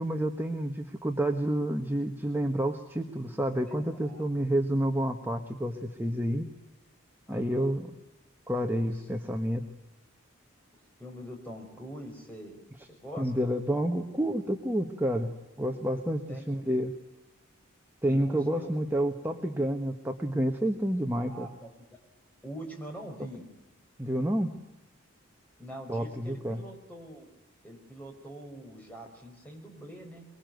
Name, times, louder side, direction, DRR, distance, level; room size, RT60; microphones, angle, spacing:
voice 1, 0.0-6.5 7.3-7.9 8.5-9.6 13.2-15.3 15.6-16.9 18.0-21.5 24.0-24.5 25.9-26.6, right 1 dB, 10° right, 3 dB, 1.3 m, -29 dB
voice 2, 3.5-4.2 7.3-7.7 11.0-12.6 12.9-13.3 16.3-16.4 18.0-18.7 21.2-21.7 22.4-23.5 25.6-27.3 27.6-30.3, equal, 10° left, 1 dB, 5.2 m, -44 dB
25.0 x 22.5 x 9.3 m, 1.0 s
head